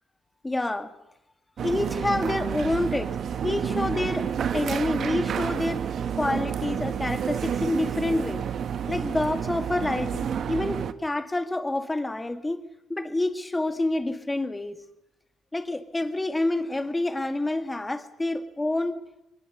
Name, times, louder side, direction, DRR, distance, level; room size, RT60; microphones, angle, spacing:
voice 1, 0.4-0.9 1.6-3.1 3.4-5.8 6.2-8.4 8.9-12.6 12.9-14.8 15.5-19.0, left 2 dB, 15° left, 8 dB, 2.1 m, -28 dB
sound 1, 1.6-10.9, right 8 dB, 60° right, 1.1 m, -29 dB
22.0 x 20.5 x 6.9 m, 0.85 s
cardioid pair, 90°, 0 cm